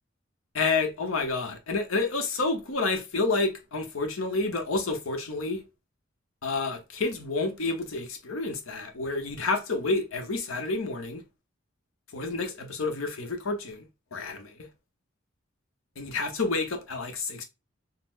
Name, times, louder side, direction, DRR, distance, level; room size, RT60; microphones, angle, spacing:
voice 1, 0.5-5.6 6.4-11.2 12.1-13.8 14.1-14.7 16.0-17.4, left 3 dB, 85° left, 0.8 m, -29 dB
4.0 x 2.0 x 2.4 m
head